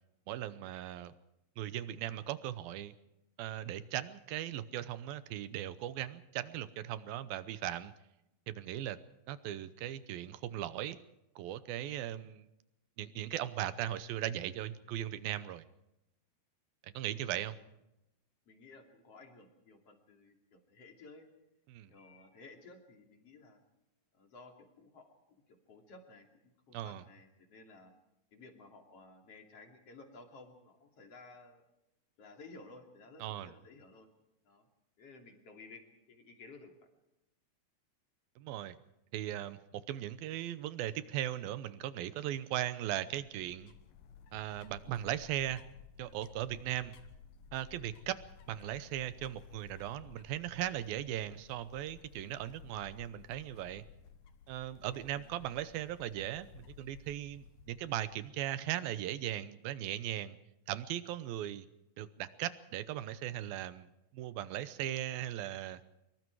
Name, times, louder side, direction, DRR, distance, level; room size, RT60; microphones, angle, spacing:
voice 1, 0.3-1.1 1.6-2.9 3.4-7.9 8.5-9.0 9.3-11.0 11.4-12.5 13.0-15.6 16.8-17.6 21.7-21.9 26.7-27.0 33.2-33.5 38.4-38.8 39.1-43.7 44.3-45.6 46.0-46.9 47.5-48.2 48.5-53.8 54.5-60.4 60.7-61.7 62.0-63.9 64.1-65.8, right 12 dB, 75° right, 14 dB, 2.5 m, -38 dB
voice 2, 17.0-17.6 18.5-21.3 21.9-23.6 24.1-27.9 28.3-31.6 32.2-34.1 34.5-34.7 35.0-35.8 36.1-36.8 55.1-55.5, left 3 dB, 40° left, 4 dB, 3.4 m, -55 dB
sound 1, 43.1-58.3, left 7 dB, 70° left, 2.7 m, -56 dB
24.5 x 23.0 x 4.7 m, 0.89 s
omnidirectional pair, 4.6 m